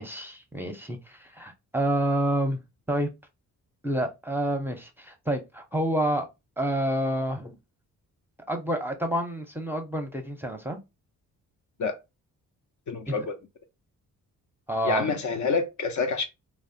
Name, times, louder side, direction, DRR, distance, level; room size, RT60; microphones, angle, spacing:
voice 1, 0.0-2.6 2.9-3.1 3.8-6.3 6.6-7.6 8.5-10.8 13.1-13.2 14.7-15.2, right 1 dB, 5° right, 0.6 m, -28 dB
voice 2, 12.9-13.4 14.8-16.3, left 4 dB, 55° left, 0.6 m, -27 dB
2.6 x 2.1 x 2.5 m
supercardioid pair, 50°, 36 cm